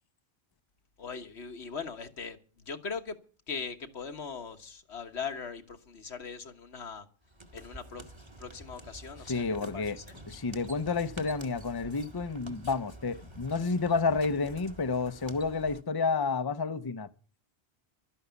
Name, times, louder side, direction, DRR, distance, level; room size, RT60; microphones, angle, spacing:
voice 1, 1.0-3.2 3.5-7.1 7.5-8.0 8.4-9.4 9.7-10.0, left 5 dB, 80° left, 1.6 m, -40 dB
sound 1, 7.2-15.8, right 1 dB, 25° right, 1.6 m, -48 dB
voice 2, 9.3-10.0 10.3-17.1, left 4 dB, 25° left, 0.7 m, -30 dB
12.5 x 11.0 x 8.1 m
omnidirectional pair, 1.1 m